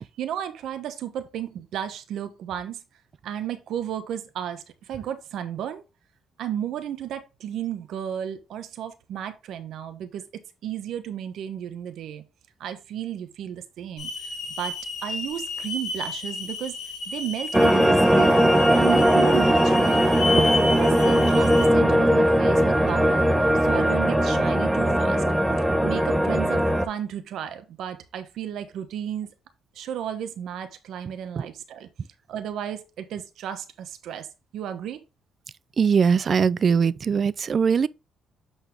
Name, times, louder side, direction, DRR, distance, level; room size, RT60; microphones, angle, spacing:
voice 1, 0.0-2.8 3.2-5.8 6.4-10.2 10.6-12.2 12.6-16.8 17.1-20.0 20.7-23.3 23.6-25.2 25.8-29.3 29.7-31.9 32.3-34.3 34.5-35.0, right 10 dB, 75° right, 1.0 m, -33 dB
Hiss / Alarm, 14.0-21.7, left 3 dB, 65° left, 3.7 m, -31 dB
sound 1, 17.5-26.9, equal, 10° right, 0.8 m, -19 dB
voice 2, 35.8-37.9, right 6 dB, 45° right, 0.4 m, -21 dB
8.0 x 4.1 x 3.4 m
cardioid pair, 90°, 0 cm